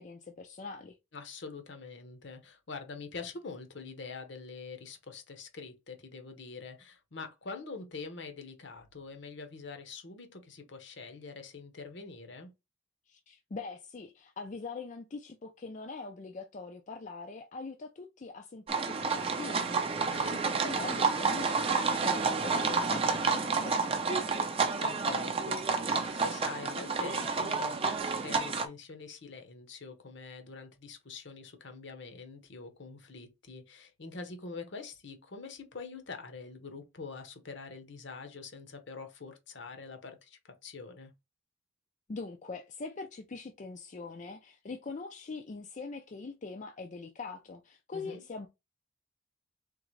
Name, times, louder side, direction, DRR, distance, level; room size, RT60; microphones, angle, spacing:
voice 1, 0.0-1.0 13.1-19.8 20.3-24.4 42.1-48.5, left 4 dB, 40° left, 0.4 m, -43 dB
voice 2, 1.1-12.5 20.0-20.3 24.8-41.1 47.9-48.2, left 4 dB, 60° left, 0.9 m, -45 dB
sound 1, 18.7-28.7, right 4 dB, 30° right, 0.5 m, -30 dB
3.8 x 3.5 x 3.1 m
head